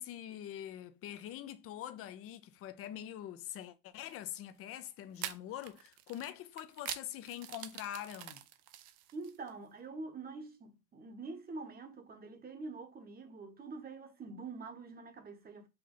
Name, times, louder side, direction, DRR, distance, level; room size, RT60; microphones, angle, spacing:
voice 1, 0.0-8.4, left 11 dB, 30° left, 0.5 m, -44 dB
sound 1, 4.0-4.2 5.2-9.5, right 12 dB, 50° right, 0.6 m, -45 dB
voice 2, 9.1-15.7, right 3 dB, 20° right, 1.0 m, -46 dB
5.1 x 2.7 x 3.7 m
hypercardioid pair, 110°, 49 cm